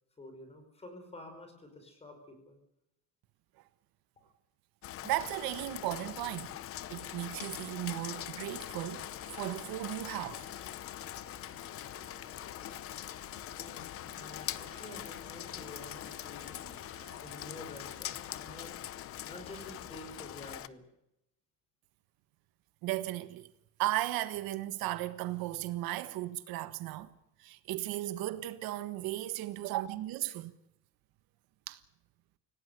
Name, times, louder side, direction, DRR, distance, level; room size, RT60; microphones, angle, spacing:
voice 1, 0.2-2.6 13.4-20.9, left 1 dB, 15° left, 5.2 m, -50 dB
Rain, 4.8-20.7, left 12 dB, 40° left, 0.7 m, -43 dB
voice 2, 5.0-6.5 6.9-10.4 22.8-23.5 23.8-27.1 27.4-30.6 31.7-31.8, right 15 dB, 85° right, 1.5 m, -36 dB
sound 1, 6.8-18.5, right 4 dB, 20° right, 7.7 m, -59 dB
26.5 x 17.5 x 6.8 m
cardioid pair, 180°, 35 cm